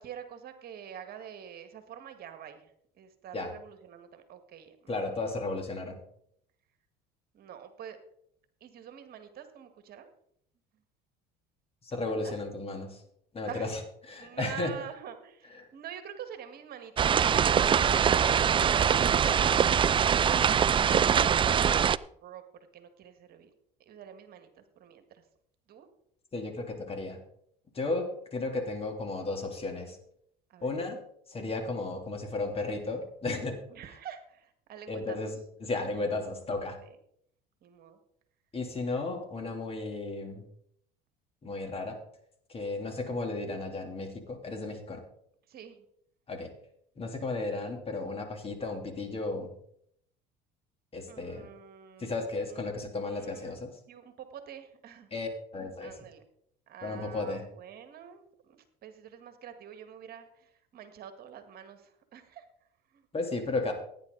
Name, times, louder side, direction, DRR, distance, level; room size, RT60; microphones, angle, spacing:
voice 1, 0.0-5.5 7.3-8.0 8.6-10.1 12.1-12.4 13.5-13.8 14.2-20.7 22.2-22.4 22.7-23.5 23.8-25.2 25.7-25.9 30.5-30.7 33.7-35.3 35.9-36.4 36.8-37.0 37.6-38.0 45.5-45.8 51.1-52.2 52.5-52.7 53.0-53.6 53.9-55.1 55.8-56.2 56.7-62.5 62.9-63.1, right 9 dB, 50° right, 8 dB, 1.8 m, -47 dB
voice 2, 4.9-6.0 11.8-13.0 13.3-14.7 26.3-27.2 27.7-30.0 30.6-31.0 31.3-33.6 34.9-36.8 38.5-40.4 41.4-42.0 42.5-45.0 46.3-46.5 47.0-49.5 50.9-51.5 52.0-53.7 55.1-56.1 56.8-57.4 63.1-63.7, left 3 dB, 30° left, 3 dB, 3.2 m, -34 dB
sound 1, 17.0-22.0, right 8 dB, 25° right, 0.4 m, -23 dB
16.5 x 9.8 x 4.0 m, 0.70 s
supercardioid pair, 90°, 20 cm